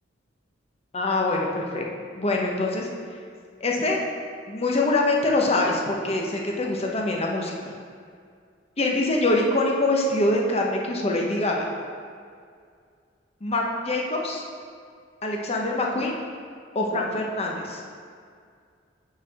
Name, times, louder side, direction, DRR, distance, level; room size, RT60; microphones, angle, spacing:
voice 1, 0.9-1.9 2.2-2.9 3.6-4.0 4.5-7.7 8.8-11.6 13.4-14.4 15.2-16.1 16.7-17.8, left 2 dB, 35° left, 0 dB, 0.9 m, -24 dB
5.8 x 4.6 x 6.2 m, 2.2 s
head